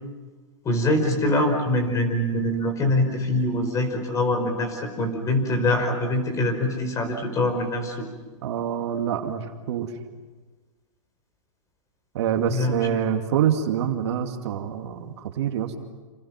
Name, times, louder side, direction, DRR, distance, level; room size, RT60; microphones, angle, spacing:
voice 1, 0.6-8.0 12.5-12.8, left 1 dB, 20° left, 6 dB, 5.2 m, -24 dB
voice 2, 8.4-9.9 12.1-15.8, right 9 dB, 55° right, 5 dB, 2.5 m, -26 dB
30.0 x 28.0 x 6.0 m, 1.3 s
hypercardioid pair, 140°, 17 cm